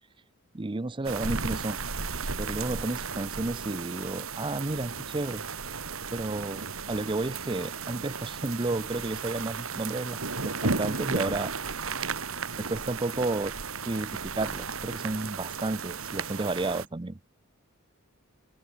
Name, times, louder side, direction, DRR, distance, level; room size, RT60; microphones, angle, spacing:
voice 1, 0.5-1.8 2.4-5.4 6.1-11.5 12.6-13.6 13.8-17.2, right 2 dB, 20° right, 0.6 m, -32 dB
sound 1, 1.0-16.8, right 4 dB, 70° right, 2.4 m, -34 dB
open air
head